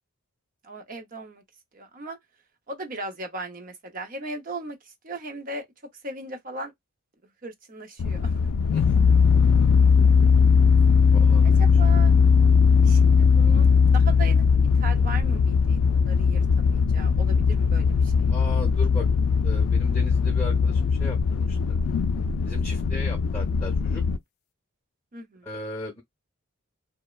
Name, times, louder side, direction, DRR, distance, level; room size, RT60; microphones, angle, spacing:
voice 1, 0.6-1.4 1.7-2.2 2.7-5.7 6.0-6.7 7.4-8.4 11.4-12.1 12.8-18.3 25.1-25.5, right 2 dB, 40° right, 0.6 m, -38 dB
sound 1, 8.0-24.2, left 5 dB, 70° left, 0.3 m, -19 dB
voice 2, 11.1-11.5 12.8-13.1 18.3-19.1 19.4-21.8 22.4-24.0 25.4-26.0, left 2 dB, 10° left, 0.7 m, -37 dB
3.0 x 2.0 x 2.3 m
head